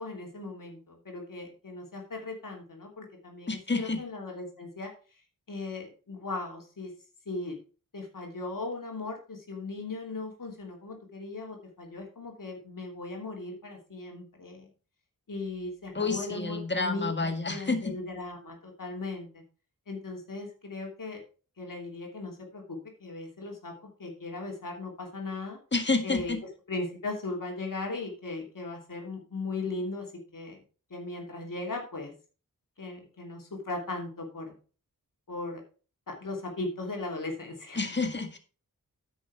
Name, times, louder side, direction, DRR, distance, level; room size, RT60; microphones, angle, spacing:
voice 1, 0.0-4.9 5.5-6.9 7.3-7.6 7.9-14.7 15.3-19.4 19.9-21.2 21.6-23.7 24.0-25.6 26.0-26.3 26.7-30.1 30.3-30.6 30.9-32.1 32.8-34.6 35.3-35.6 36.1-37.8, left 3 dB, 65° left, 1 dB, 2.9 m, -38 dB
voice 2, 3.5-4.0 15.9-18.0 25.7-26.4 37.7-38.4, left 3 dB, 30° left, 6 dB, 1.7 m, -29 dB
9.7 x 6.2 x 4.7 m, 0.37 s
wide cardioid pair, 70°, 35 cm